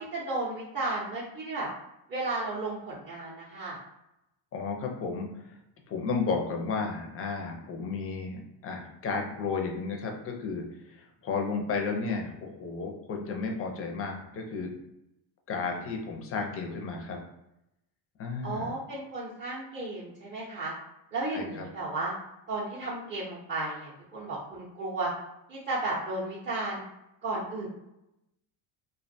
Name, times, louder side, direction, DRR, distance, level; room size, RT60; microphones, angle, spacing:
voice 1, 0.0-1.7 2.1-3.8 18.4-20.7 21.1-22.1 22.5-25.1 25.5-26.8 27.2-27.7, right 2 dB, 25° right, -8 dB, 0.5 m, -33 dB
voice 2, 4.5-5.5 5.9-14.7 15.5-17.2 18.2-18.7 21.3-21.6, left 4 dB, 30° left, 2 dB, 0.4 m, -33 dB
2.5 x 2.2 x 2.6 m, 0.86 s
cardioid pair, 130°, 47 cm